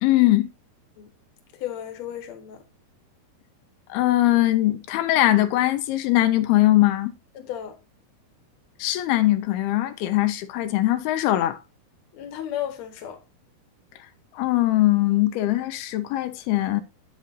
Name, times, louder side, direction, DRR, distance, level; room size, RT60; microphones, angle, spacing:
voice 1, 0.0-0.5 3.9-7.1 8.8-11.6 14.3-16.8, left 15 dB, 85° left, 2.5 m, -21 dB
voice 2, 1.6-2.6 7.4-7.7 12.1-13.2, left 11 dB, 60° left, 2.1 m, -33 dB
8.5 x 7.4 x 2.7 m
omnidirectional pair, 4.5 m